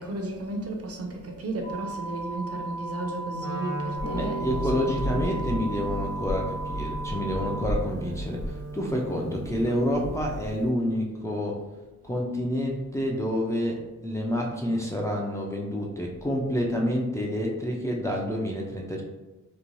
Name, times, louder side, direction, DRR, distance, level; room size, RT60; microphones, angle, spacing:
voice 1, 0.0-5.6, right 2 dB, 50° right, 0.6 m, -34 dB
sound 1, 1.6-7.6, right 2 dB, 85° left, 0.8 m, -36 dB
Wind instrument woodwind instrument, 3.4-9.8, right 1 dB, 75° right, 0.9 m, -39 dB
Harp, 4.0-10.7, equal, 60° left, 1.1 m, -34 dB
voice 2, 4.1-11.6 12.0-19.0, equal, 10° left, 0.4 m, -28 dB
3.1 x 2.2 x 2.5 m
cardioid pair, 85°, 30 cm